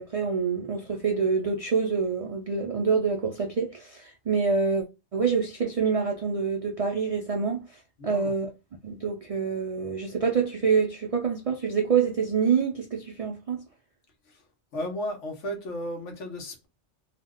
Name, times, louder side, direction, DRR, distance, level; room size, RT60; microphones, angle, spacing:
voice 1, 0.0-4.8 5.1-8.5 8.8-13.6, right 5 dB, 70° right, 0.3 m, -26 dB
voice 2, 8.0-8.3 14.3-14.4 14.7-16.7, equal, 90° left, 1.2 m, -34 dB
2.8 x 2.1 x 3.6 m
omnidirectional pair, 1.2 m